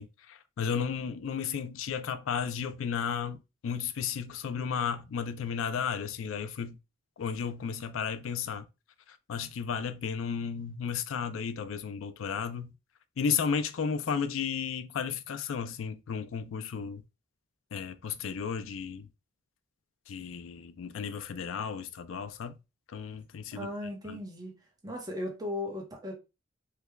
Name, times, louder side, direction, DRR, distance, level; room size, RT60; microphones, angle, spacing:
voice 1, 0.0-3.4 3.6-6.8 7.2-8.7 9.3-12.7 13.2-17.0 17.7-19.1 20.1-22.6 22.9-23.7 24.1-24.2, left 6 dB, 90° left, 0.4 m, -33 dB
voice 2, 23.5-24.5 24.8-26.1, left 1 dB, 20° right, 0.9 m, -37 dB
3.2 x 2.2 x 3.3 m
head